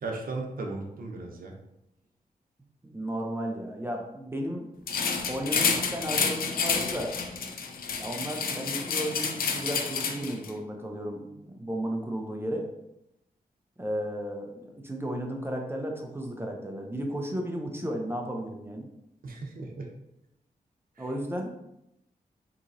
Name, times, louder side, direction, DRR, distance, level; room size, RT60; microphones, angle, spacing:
voice 1, 0.0-1.5 19.2-19.9 21.0-21.1, right 3 dB, 70° right, 1 dB, 0.7 m, -36 dB
voice 2, 2.9-4.6 5.3-7.1 8.0-12.7 13.8-18.9 21.0-21.5, equal, 15° right, 1 dB, 0.5 m, -34 dB
sound 1, 4.9-10.5, left 5 dB, 80° left, 0.5 m, -29 dB
3.7 x 2.9 x 2.6 m, 0.84 s
wide cardioid pair, 85°, 15 cm